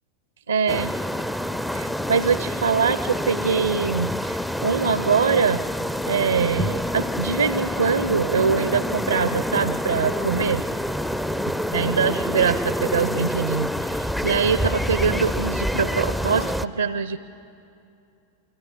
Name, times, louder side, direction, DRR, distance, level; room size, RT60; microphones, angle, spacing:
voice 1, 0.5-0.9 1.7-5.6 6.1-10.6 11.7-17.2, right 6 dB, 75° right, 15 dB, 0.5 m, -23 dB
sound 1, 0.7-16.7, equal, 5° left, 0.5 m, -27 dB
29.5 x 25.0 x 5.3 m, 2.6 s
figure-of-eight pair, 90°, 0 cm